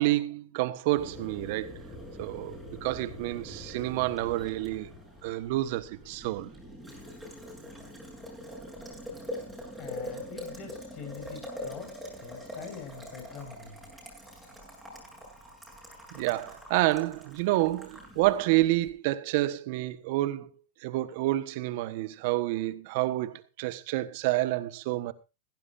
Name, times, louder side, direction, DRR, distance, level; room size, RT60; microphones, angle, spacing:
voice 1, 0.0-1.8 2.2-4.9 5.2-6.5 16.1-20.5 20.8-25.1, right 17 dB, 55° right, 1.3 m, -29 dB
Boiling, 1.0-18.9, left 1 dB, 5° right, 7.9 m, -44 dB
voice 2, 9.8-13.9, left 6 dB, 40° left, 6.6 m, -44 dB
16.5 x 16.0 x 2.6 m
hypercardioid pair, 120°, 0 cm